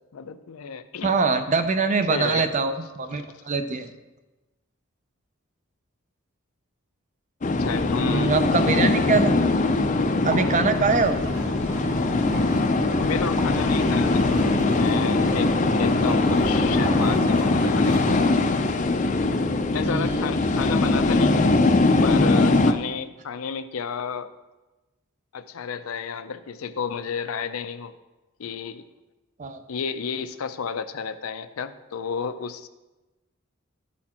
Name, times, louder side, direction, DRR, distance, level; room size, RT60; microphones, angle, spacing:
voice 1, 0.1-1.1 2.1-2.5 3.1-3.3 7.4-8.3 13.0-14.3 14.6-18.3 19.7-21.5 22.0-24.3 25.3-27.9 28.4-28.9 29.7-32.7, left 6 dB, 90° left, 11 dB, 0.5 m, -32 dB
voice 2, 1.0-3.9 8.0-9.3 10.2-11.2 19.8-20.2 29.4-29.6, right 4 dB, 35° right, 9 dB, 0.5 m, -23 dB
sound 1, 7.4-22.7, left 2 dB, 35° left, 0.4 m, -21 dB
sound 2, 10.3-18.2, equal, 85° right, 2.4 m, -32 dB
12.0 x 4.2 x 4.3 m, 1.1 s
head